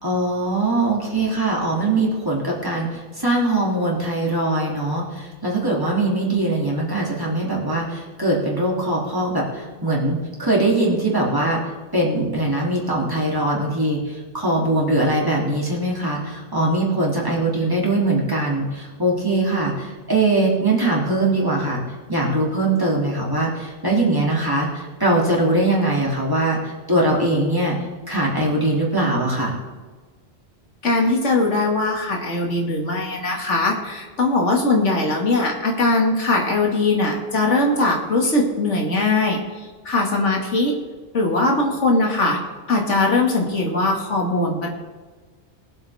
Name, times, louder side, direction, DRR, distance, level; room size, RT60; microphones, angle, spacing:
voice 1, 0.0-11.6 11.9-21.8 22.1-27.7 28.1-29.5, right 2 dB, 20° right, -4 dB, 3.1 m, -21 dB
voice 2, 30.8-39.4 39.9-40.7 41.1-42.4 42.7-44.7, left 2 dB, 90° left, 0 dB, 2.5 m, -20 dB
22.0 x 8.0 x 3.6 m, 1.4 s
omnidirectional pair, 1.2 m